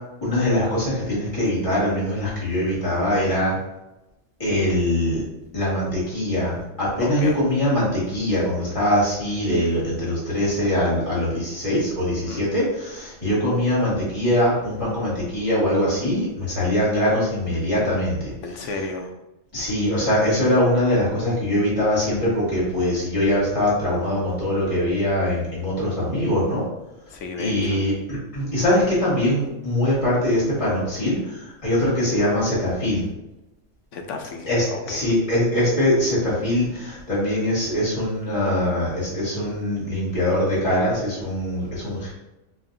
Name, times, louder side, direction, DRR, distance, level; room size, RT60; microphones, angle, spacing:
voice 1, 0.2-3.5 4.4-5.2 5.5-18.3 19.5-26.6 27.4-33.0 34.5-42.1, left 1 dB, 25° left, -9 dB, 1.6 m, -22 dB
voice 2, 7.0-7.4 12.1-12.4 18.4-19.1 27.1-27.8 33.9-35.0, left 3 dB, 75° left, 4 dB, 0.9 m, -33 dB
4.7 x 2.6 x 2.6 m, 0.95 s
omnidirectional pair, 1.3 m